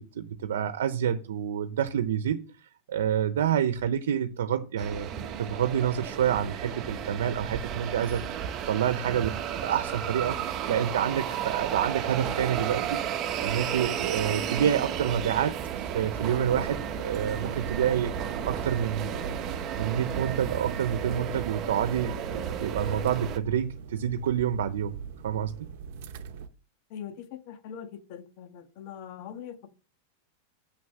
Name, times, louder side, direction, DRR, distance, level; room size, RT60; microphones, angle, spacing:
voice 1, 0.0-2.4 2.9-5.1 5.4-18.1 18.4-19.4 19.8-24.9 25.2-25.5, right 9 dB, 90° right, 10 dB, 0.8 m, -28 dB
sound 1, 4.8-23.4, right 9 dB, 35° right, 1.1 m, -33 dB
sound 2, 17.1-26.5, right 6 dB, 60° right, 0.9 m, -42 dB
voice 2, 26.9-29.7, left 8 dB, 50° left, 8 dB, 1.5 m, -42 dB
6.6 x 6.3 x 7.4 m, 0.36 s
supercardioid pair, 145°, 0 cm